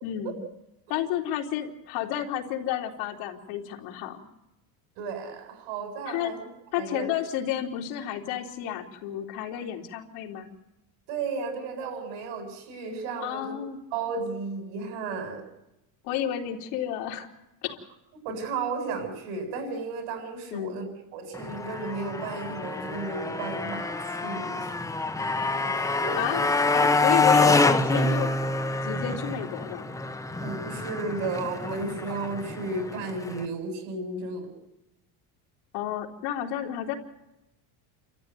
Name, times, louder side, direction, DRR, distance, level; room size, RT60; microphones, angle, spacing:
voice 1, 0.0-0.4 0.9-4.2 6.1-6.3 6.7-10.5 13.2-13.8 16.0-17.3 17.6-17.7 20.5-20.8 26.2-26.4 26.7-28.3 28.8-29.9 35.7-36.9, left 10 dB, 75° left, 3.6 m, -31 dB
voice 2, 5.0-6.4 6.8-7.1 11.1-13.6 13.9-15.5 18.2-20.8 21.1-24.7 26.0-26.5 30.4-34.6, right 4 dB, 80° right, 7.5 m, -33 dB
Motorcycle, 21.3-33.5, left 3 dB, 5° left, 0.9 m, -26 dB
29.0 x 14.0 x 9.4 m
cardioid pair, 160°, 46 cm